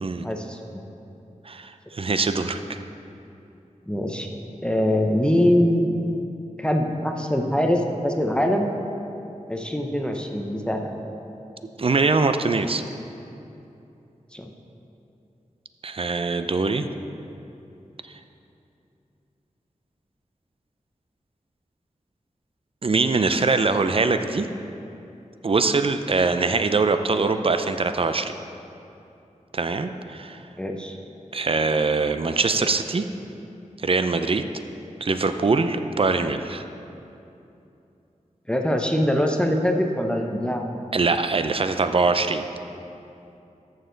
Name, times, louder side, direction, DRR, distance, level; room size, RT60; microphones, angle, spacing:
voice 1, 0.2-0.8 3.9-4.3 4.6-5.8 6.6-8.8 9.5-11.0 14.3-14.5 30.6-31.0 38.5-40.6, equal, 5° left, 2 dB, 0.7 m, -23 dB
voice 2, 1.4-2.8 11.8-12.8 15.8-16.9 22.8-24.5 25.4-28.3 29.5-30.4 31.3-33.1 33.8-34.5 35.0-36.6 40.9-42.4, right 4 dB, 45° right, 9 dB, 0.5 m, -23 dB
13.5 x 6.5 x 3.9 m, 2.8 s
wide cardioid pair, 75°, 13 cm